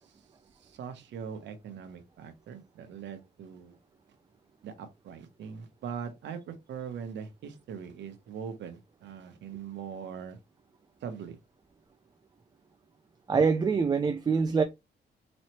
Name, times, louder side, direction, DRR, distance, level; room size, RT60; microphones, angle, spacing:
voice 1, 0.6-3.8 4.6-10.4 11.0-11.4, right 7 dB, 85° right, 1.0 m, -41 dB
voice 2, 13.3-14.6, right 5 dB, 20° right, 0.4 m, -24 dB
4.3 x 3.1 x 3.0 m
cardioid pair, 125°, 18 cm